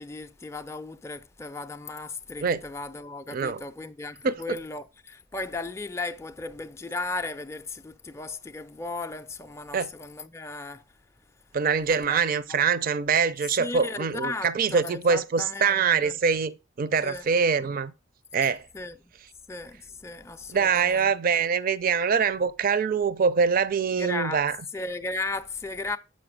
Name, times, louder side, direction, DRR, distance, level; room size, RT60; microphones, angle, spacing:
voice 1, 0.0-10.8 11.9-12.3 13.4-16.2 17.0-17.3 18.7-19.0 19.5-21.4 23.9-24.4 24.7-26.0, left 3 dB, 15° left, 0.4 m, -36 dB
voice 2, 3.3-3.6 4.2-4.6 9.7-9.9 11.5-17.9 18.3-18.6 20.5-24.6, right 6 dB, 45° right, 0.4 m, -24 dB
7.4 x 5.1 x 4.9 m
head